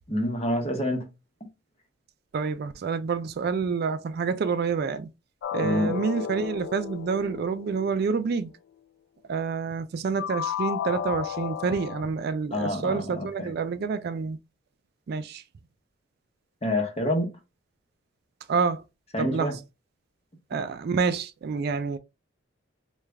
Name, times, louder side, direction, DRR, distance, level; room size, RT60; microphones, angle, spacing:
voice 1, 0.1-1.1 5.6-6.0 12.5-13.5 16.6-17.3 19.1-19.6, left 1 dB, 30° left, 0.9 m, -27 dB
voice 2, 2.3-5.1 5.5-8.5 9.3-14.4 15.1-15.4 18.5-18.8 19.2-19.5 20.5-22.0, right 5 dB, 55° right, 0.3 m, -28 dB
sound 1, 5.4-8.4 10.2-12.0, left 9 dB, 70° left, 0.3 m, -33 dB
3.2 x 2.3 x 3.4 m
head